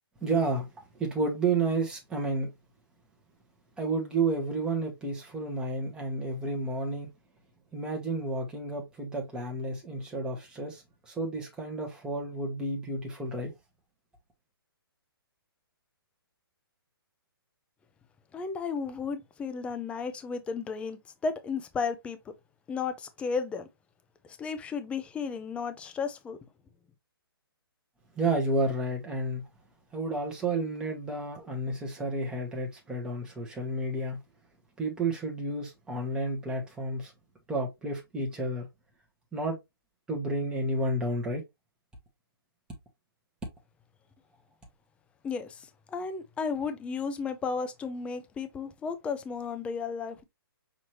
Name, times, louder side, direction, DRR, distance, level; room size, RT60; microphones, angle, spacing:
voice 1, 0.2-0.7 0.9-2.5 3.8-7.1 7.7-13.5 28.2-29.5 29.9-34.2 34.8-37.1 37.5-38.7 39.3-39.6 40.1-41.4, right 2 dB, 5° right, 1.0 m, -31 dB
voice 2, 18.3-22.2 22.7-23.7 24.3-26.4 45.2-50.2, left 5 dB, 10° left, 0.5 m, -34 dB
6.1 x 2.7 x 3.0 m
hypercardioid pair, 145°, 13 cm